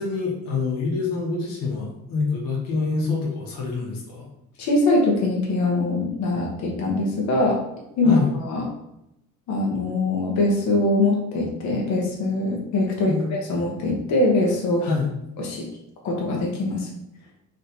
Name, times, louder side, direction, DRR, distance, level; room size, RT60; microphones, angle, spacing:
voice 1, 0.0-4.3 8.0-8.3 13.0-13.3 14.8-15.1, left 4 dB, 85° left, -2 dB, 1.2 m, -26 dB
voice 2, 4.6-7.6 8.0-8.6 9.5-14.9 15.4-15.6 16.0-16.9, left 2 dB, 60° left, -1 dB, 1.0 m, -22 dB
3.3 x 2.8 x 4.2 m, 0.85 s
cardioid pair, 145°, 33 cm